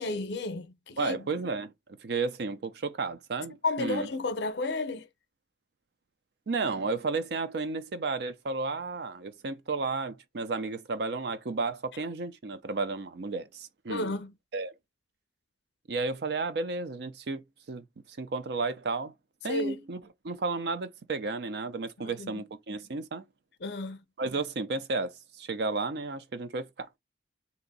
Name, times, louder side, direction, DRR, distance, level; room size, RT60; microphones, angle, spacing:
voice 1, 0.0-1.3 3.6-5.1 13.9-14.3 19.5-19.8 22.0-22.4 23.6-24.0, left 2 dB, 65° left, 0.6 m, -32 dB
voice 2, 1.0-1.7 2.0-4.1 6.5-14.1 14.5-14.7 15.9-17.9 18.2-19.1 19.4-20.0 20.2-23.2 24.2-26.9, right 3 dB, 60° right, 0.5 m, -33 dB
2.9 x 2.5 x 3.9 m
head